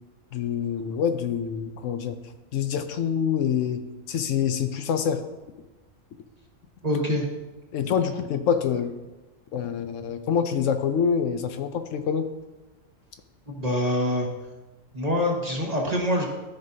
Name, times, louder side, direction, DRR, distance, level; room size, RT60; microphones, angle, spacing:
voice 1, 0.3-2.2 2.5-3.8 4.1-5.2 7.7-8.9 9.5-12.3, left 7 dB, 75° left, 8 dB, 0.9 m, -26 dB
voice 2, 6.8-7.3 13.5-14.3 14.9-16.2, left 1 dB, 30° right, -2 dB, 1.3 m, -25 dB
13.0 x 5.2 x 2.7 m, 1.1 s
omnidirectional pair, 1.3 m